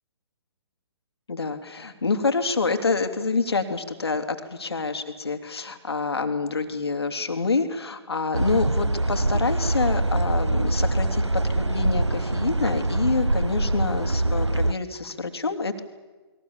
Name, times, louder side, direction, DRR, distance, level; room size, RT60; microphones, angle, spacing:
voice 1, 1.3-15.8, left 4 dB, 65° left, 7 dB, 3.0 m, -27 dB
sound 1, 8.3-14.7, right 2 dB, 90° right, 0.7 m, -24 dB
30.0 x 22.0 x 7.3 m, 1.3 s
figure-of-eight pair, 130°, 14 cm